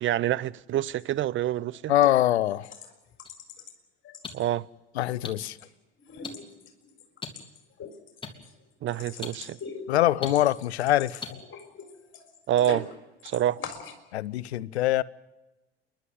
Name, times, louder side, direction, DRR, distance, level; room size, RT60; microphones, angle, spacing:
voice 1, 0.0-1.9 4.3-4.6 8.8-9.6 12.5-12.9 13.2-13.6, right 12 dB, 35° right, 0.7 m, -27 dB
sound 1, 0.9-1.0 1.4-1.7 2.0-2.1 2.6-3.7 4.0-4.8 5.2-5.7 6.0-12.9 13.2-14.0, left 5 dB, 35° left, 4.3 m, -43 dB
voice 2, 1.9-2.7 5.0-5.6 9.9-11.4 14.1-15.0, left 13 dB, 80° left, 0.8 m, -24 dB
sound 2, 3.2-3.3 4.2-4.3 5.2-5.3 6.2-6.3 7.2-7.3 8.2-8.3 9.2-9.3 10.2-10.3 11.2-11.3, left 4 dB, 15° left, 3.2 m, -35 dB
28.5 x 11.5 x 9.6 m
hypercardioid pair, 80°, 32 cm